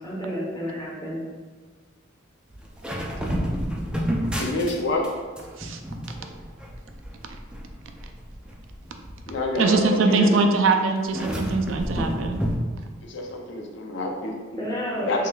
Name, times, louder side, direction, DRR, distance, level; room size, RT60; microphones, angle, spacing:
voice 1, 0.0-1.2 14.5-15.3, equal, 20° left, -6 dB, 1.0 m, -30 dB
sound 1, 2.5-5.1 5.4-9.8 11.0-12.6, equal, 5° right, 0.4 m, -30 dB
voice 2, 4.4-5.1 9.3-10.4 13.0-14.4 15.0-15.3, left 2 dB, 60° left, 1 dB, 0.5 m, -27 dB
voice 3, 9.5-12.4, right 3 dB, 75° right, 5 dB, 0.4 m, -22 dB
4.7 x 3.2 x 2.2 m, 1.4 s
head